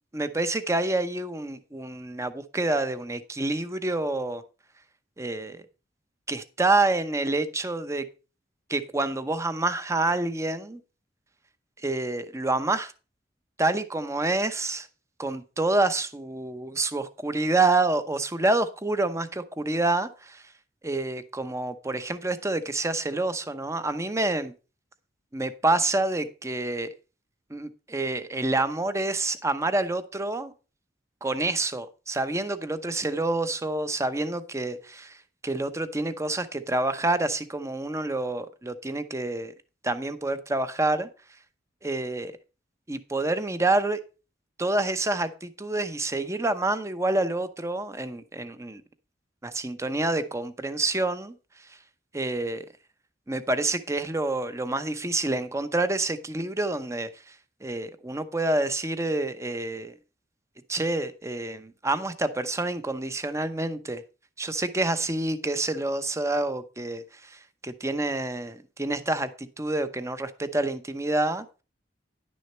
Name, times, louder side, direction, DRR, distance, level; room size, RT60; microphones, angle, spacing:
voice 1, 0.1-4.4 5.2-5.6 6.3-8.0 8.7-10.8 11.8-12.9 13.6-14.9 15.2-20.4 20.8-24.5 25.3-26.9 27.5-30.5 31.2-35.2 35.4-39.5 39.8-41.1 41.8-42.3 42.9-44.0 44.6-48.8 49.4-51.3 52.1-52.6 53.3-57.3 57.6-59.9 60.7-64.0 64.4-71.5, right 2 dB, 15° right, 0.7 m, -27 dB
10.5 x 6.4 x 4.3 m
head